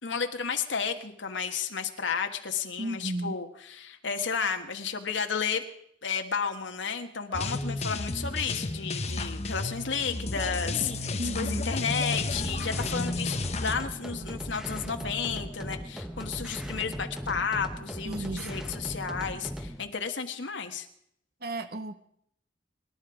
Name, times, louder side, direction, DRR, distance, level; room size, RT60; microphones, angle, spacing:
voice 1, 0.0-5.6 6.0-20.9, left 6 dB, 75° left, 6 dB, 1.5 m, -32 dB
voice 2, 2.8-3.3 11.2-11.6 18.0-18.4 21.4-21.9, right 1 dB, 55° right, 9 dB, 1.2 m, -33 dB
sound 1, 7.3-13.7, left 2 dB, 35° left, 1.0 m, -32 dB
sound 2, 12.1-19.8, equal, 5° right, 1.0 m, -38 dB
25.5 x 11.0 x 5.0 m, 0.71 s
head